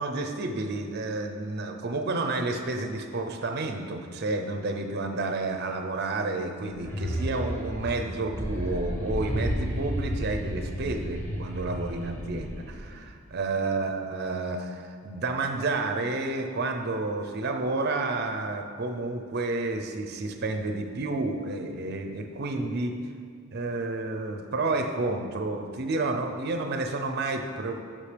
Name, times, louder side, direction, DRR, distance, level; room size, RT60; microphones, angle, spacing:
voice 1, 0.0-23.0 23.5-27.8, right 2 dB, 50° right, 5 dB, 0.5 m, -30 dB
sound 1, 6.7-13.0, equal, 10° left, 0.8 m, -32 dB
8.3 x 5.3 x 3.3 m, 2.2 s
head